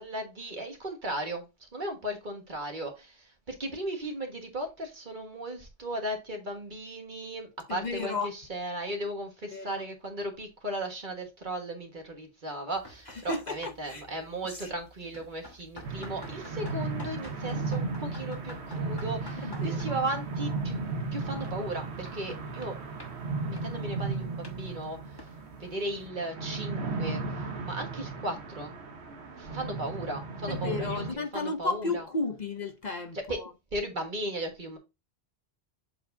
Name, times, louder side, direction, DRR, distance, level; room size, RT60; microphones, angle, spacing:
voice 1, 0.0-22.8 23.5-25.0 25.6-28.7 29.4-32.0 33.3-33.4 33.7-34.8, right 1 dB, 45° right, 1.7 m, -36 dB
voice 2, 7.7-8.3 9.5-9.8 13.1-14.0 14.5-14.7 19.4-20.0 30.5-33.5, left 3 dB, 45° left, 0.9 m, -34 dB
sound 1, 12.7-26.1, left 1 dB, 25° left, 1.2 m, -51 dB
sound 2, 15.8-31.1, right 3 dB, 80° right, 1.3 m, -35 dB
7.7 x 4.7 x 2.7 m
omnidirectional pair, 1.1 m